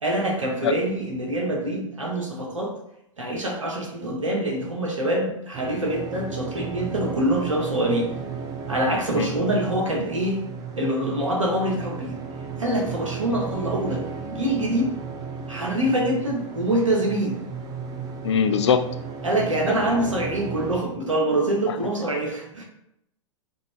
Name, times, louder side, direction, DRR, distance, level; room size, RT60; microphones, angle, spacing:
voice 1, 0.0-2.7 3.2-8.1 8.7-10.4 10.8-12.1 12.6-14.0 14.3-15.0 15.5-17.4 19.2-22.6, right 1 dB, 75° right, -1 dB, 1.2 m, -25 dB
sound 1, 5.5-20.8, right 5 dB, 20° right, 0.4 m, -34 dB
voice 2, 18.2-18.9 19.9-20.0, left 7 dB, 60° left, 9 dB, 0.4 m, -21 dB
4.4 x 2.7 x 3.3 m, 0.80 s
figure-of-eight pair, 100°, 17 cm